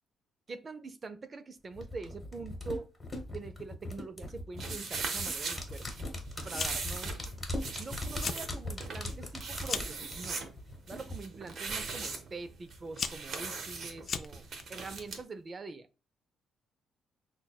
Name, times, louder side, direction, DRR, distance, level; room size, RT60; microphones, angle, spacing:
voice 1, 0.5-2.9 3.3-5.9 6.4-7.2 7.8-10.5 10.9-15.9, right 3 dB, 35° right, 0.4 m, -44 dB
sound 1, 1.8-11.2 11.5-11.6, left 1 dB, 15° left, 1.1 m, -40 dB
sound 2, 4.6-15.2, right 4 dB, 60° right, 0.7 m, -40 dB
Fire, 6.5-7.0 7.3-7.8 8.1-8.5 8.9-10.0 10.8-11.2 12.0-12.1 12.7-14.6, left 5 dB, 50° left, 0.4 m, -37 dB
5.7 x 2.1 x 2.3 m
cardioid pair, 90°, 0 cm